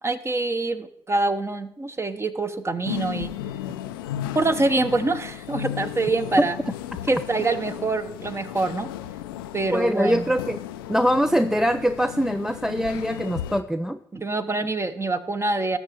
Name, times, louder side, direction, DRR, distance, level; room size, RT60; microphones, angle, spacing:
voice 1, 0.0-3.3 4.3-6.5 7.1-8.9 9.5-10.3 14.1-15.8, right 2 dB, 25° right, 10 dB, 1.0 m, -25 dB
sound 1, 2.9-13.6, left 11 dB, 85° left, 0.4 m, -35 dB
voice 2, 9.7-10.6 10.9-14.0, equal, 5° right, 9 dB, 0.4 m, -23 dB
18.5 x 6.9 x 3.1 m, 0.73 s
hypercardioid pair, 40°, 11 cm